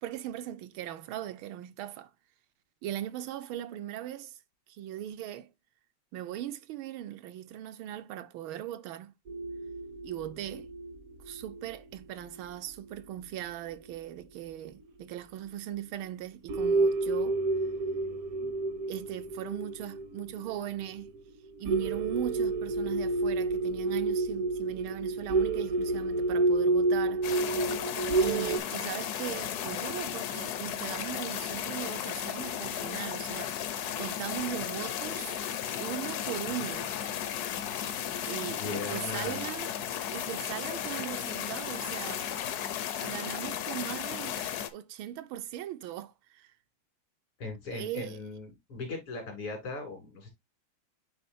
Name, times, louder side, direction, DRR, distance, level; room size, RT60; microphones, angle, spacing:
voice 1, 0.0-2.1 2.8-4.4 4.7-5.5 6.1-9.1 10.0-10.7 11.2-17.4 18.4-18.5 18.9-21.1 21.6-27.3 28.2-35.4 35.8-36.9 38.2-39.7 40.0-42.3 42.8-46.5 47.7-48.2, right 12 dB, 75° right, 1.4 m, -39 dB
sound 1, 9.3-13.2 13.7-13.8 14.8-14.9 15.4-15.5 16.0-16.2 16.5-28.6, right 3 dB, 60° right, 0.9 m, -30 dB
sound 2, 27.2-44.7, left 10 dB, 65° left, 0.9 m, -35 dB
voice 2, 38.6-39.4 47.4-50.3, left 3 dB, 90° left, 3.7 m, -38 dB
9.7 x 3.7 x 2.6 m
omnidirectional pair, 2.4 m